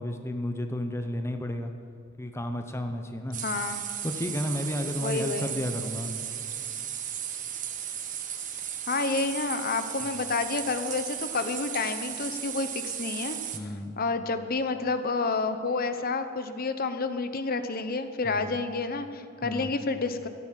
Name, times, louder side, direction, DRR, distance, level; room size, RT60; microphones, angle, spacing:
voice 1, 0.0-1.7 2.2-3.4 4.0-6.1 13.5-14.0 18.2-18.6 19.4-19.7, left 1 dB, 10° left, 6 dB, 0.7 m, -32 dB
sound 1, 3.3-13.6, right 9 dB, 40° right, 1.1 m, -35 dB
voice 2, 3.4-3.8 5.0-5.5 8.9-13.4 14.0-20.3, left 3 dB, 45° left, 10 dB, 0.8 m, -29 dB
14.5 x 11.0 x 7.6 m, 2.6 s
head